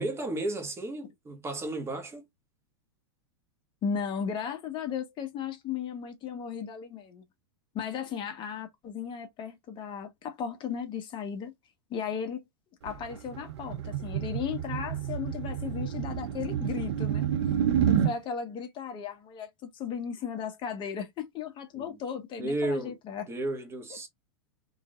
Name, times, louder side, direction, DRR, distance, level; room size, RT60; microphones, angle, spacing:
voice 1, 0.0-2.2 21.7-22.0 22.4-22.9 23.3-24.1, right 2 dB, 20° right, 1.5 m, -33 dB
voice 2, 3.8-7.2 7.7-11.5 11.9-12.4 12.8-17.3 17.9-23.2 23.9-24.0, left 7 dB, 35° left, 1.2 m, -35 dB
sound 1, 12.9-18.1, right 9 dB, 80° right, 0.8 m, -29 dB
3.8 x 3.5 x 2.4 m
hypercardioid pair, 115°, 14 cm